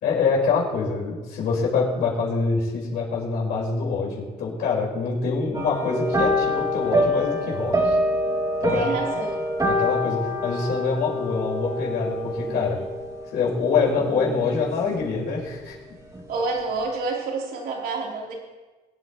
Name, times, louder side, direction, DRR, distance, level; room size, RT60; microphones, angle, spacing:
voice 1, 0.0-8.0 8.6-9.2 9.6-12.8 13.3-15.7, left 4 dB, 70° left, -3 dB, 4.9 m, -25 dB
sound 1, 5.5-15.1 15.4-15.8 16.1-16.2, equal, 20° right, 2.4 m, -26 dB
voice 2, 8.7-9.4 16.3-18.3, right 3 dB, 65° right, -2 dB, 3.6 m, -28 dB
23.0 x 9.3 x 3.1 m, 1.2 s
cardioid pair, 110°, 17 cm